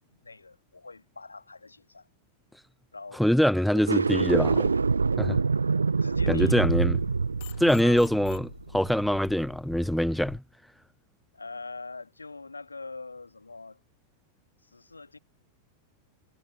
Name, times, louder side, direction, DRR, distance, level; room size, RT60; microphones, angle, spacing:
voice 1, 0.0-2.1 2.9-3.2 3.5-4.3 4.7-4.8 6.0-6.6 7.8-8.0 11.3-13.8 14.6-15.2, left 3 dB, 80° left, 2.0 m, -44 dB
voice 2, 3.2-4.6 5.2-5.4 6.3-7.0 7.6-10.4, equal, ahead, 0.5 m, -24 dB
sound 1, 3.7-9.0, right 4 dB, 75° right, 0.8 m, -26 dB
sound 2, 6.1-10.4, left 26 dB, 50° left, 2.2 m, -47 dB
figure-of-eight pair, 90°, 0 cm